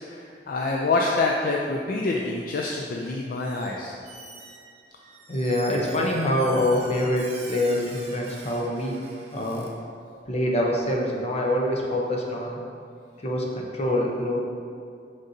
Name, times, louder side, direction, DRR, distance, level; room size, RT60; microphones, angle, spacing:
voice 1, 0.0-3.9, left 3 dB, 55° left, -1 dB, 0.4 m, -26 dB
Squeak, 3.4-3.7 4.0-9.7, right 3 dB, 40° right, 0.8 m, -44 dB
voice 2, 5.3-9.0 9.3-9.7 10.3-12.6 13.2-14.4, left 1 dB, 40° left, -1 dB, 0.8 m, -25 dB
6.5 x 5.4 x 2.7 m, 2.4 s
head